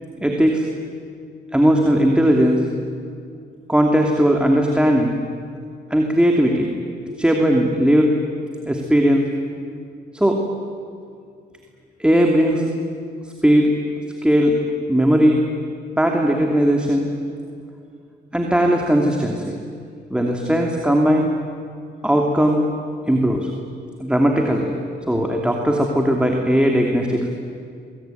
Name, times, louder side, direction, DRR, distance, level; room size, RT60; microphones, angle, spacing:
voice 1, 0.2-0.7 1.5-2.6 3.7-5.2 5.9-6.7 7.2-8.1 8.7-9.3 10.1-10.4 12.0-12.6 13.4-13.7 14.2-14.6 14.9-15.4 16.0-17.1 18.3-19.5 20.1-21.3 22.0-22.6 23.1-23.5 24.0-24.7 25.1-27.2, equal, 5° right, 1 dB, 2.9 m, -17 dB
24.0 x 22.5 x 9.3 m, 2.3 s
cardioid pair, 90°, 20 cm